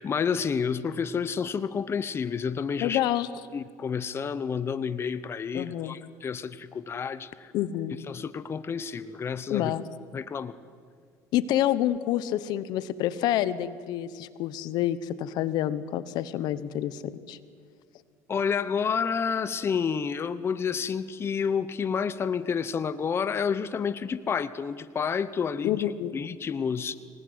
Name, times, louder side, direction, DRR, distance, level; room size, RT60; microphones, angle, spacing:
voice 1, 0.0-3.0 3.5-7.5 8.1-9.7 10.1-10.5 18.3-25.8 26.1-27.0, left 6 dB, 35° left, 15 dB, 0.9 m, -29 dB
voice 2, 2.8-3.3 5.5-6.0 7.5-7.9 9.5-9.8 11.3-17.0 17.3-17.4 25.6-26.1, left 12 dB, 75° left, 15 dB, 1.1 m, -28 dB
25.0 x 19.0 x 9.7 m, 2.1 s
cardioid pair, 100°, 7 cm